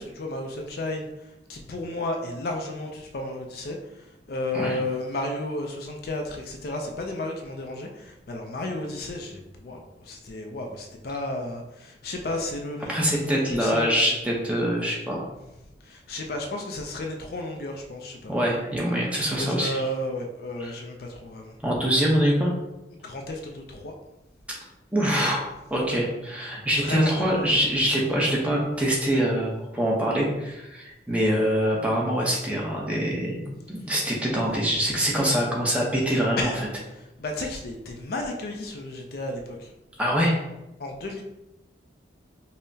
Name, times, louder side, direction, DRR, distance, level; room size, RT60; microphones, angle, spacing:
voice 1, 0.0-14.2 15.8-18.3 19.2-21.6 23.0-23.9 26.8-27.3 36.4-36.6 36.9-39.7 40.8-41.2, left 2 dB, 55° left, 2 dB, 0.4 m, -33 dB
voice 2, 12.9-15.2 18.3-19.8 20.6-20.7 21.6-22.5 24.9-33.4 33.7-36.5 40.0-40.4, equal, 5° right, -3 dB, 0.7 m, -24 dB
5.4 x 2.1 x 2.7 m, 0.95 s
head